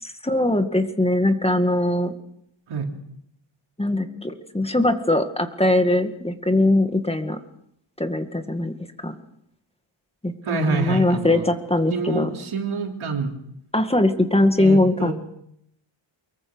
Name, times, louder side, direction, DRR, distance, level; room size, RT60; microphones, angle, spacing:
voice 1, 0.0-2.1 3.8-7.4 8.0-8.8 9.0-9.1 10.2-12.3 13.7-15.1, left 1 dB, 10° left, 7 dB, 2.0 m, -21 dB
voice 2, 10.4-11.5 11.9-13.3 14.6-15.1, right 4 dB, 85° right, 3 dB, 3.7 m, -27 dB
24.5 x 22.5 x 6.3 m, 0.74 s
wide cardioid pair, 115°, 48 cm